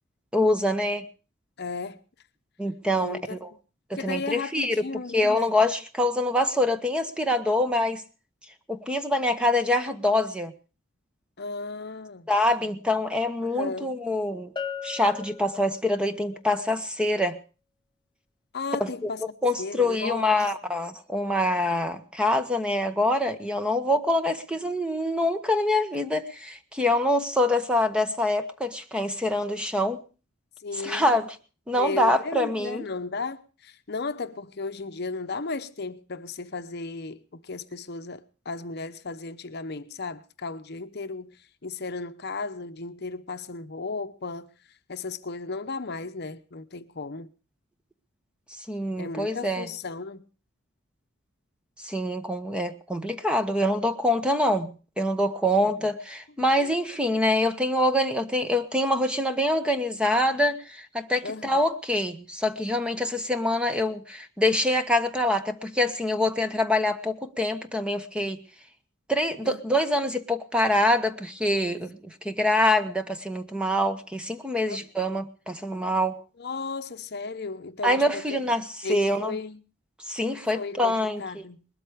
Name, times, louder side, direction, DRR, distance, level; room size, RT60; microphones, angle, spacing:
voice 1, 0.3-1.0 2.6-3.5 3.9-4.8 5.1-8.0 8.7-10.5 12.3-14.5 14.8-17.4 18.8-19.1 19.4-30.0 30.8-31.3 31.7-32.9 48.7-49.7 51.8-68.4 69.1-76.2 77.8-79.3 80.1-81.4, left 1 dB, 5° right, 1.1 m, -25 dB
voice 2, 1.6-2.0 2.9-3.4 4.0-5.5 11.4-12.3 13.4-13.9 18.5-19.2 19.6-20.4 30.6-31.2 31.7-41.4 41.6-44.5 44.9-47.3 49.0-50.2 61.2-61.6 69.4-69.6 74.7-74.8 76.4-78.4 78.8-79.6 80.5-81.7, left 3 dB, 55° left, 0.9 m, -35 dB
Bell, 14.6-16.2, left 6 dB, 20° left, 0.7 m, -37 dB
20.5 x 13.0 x 5.0 m
head